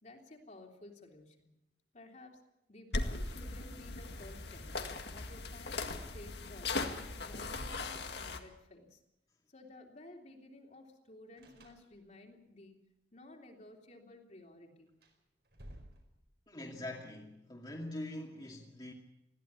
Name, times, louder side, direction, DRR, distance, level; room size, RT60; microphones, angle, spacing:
voice 1, 0.0-1.5 1.9-2.4 2.7-4.7 5.1-9.0 9.5-12.8 13.1-14.9, left 2 dB, 45° left, 3.3 m, -54 dB
sound 1, 2.9-8.4, left 3 dB, 75° left, 2.0 m, -39 dB
sound 2, 2.9-3.7 4.0-4.1 6.4-6.5 6.9-8.6 11.4-12.3 14.9-16.5, equal, 70° right, 4.9 m, -55 dB
voice 2, 16.5-18.9, left 1 dB, 25° left, 2.4 m, -43 dB
21.0 x 15.5 x 8.4 m
head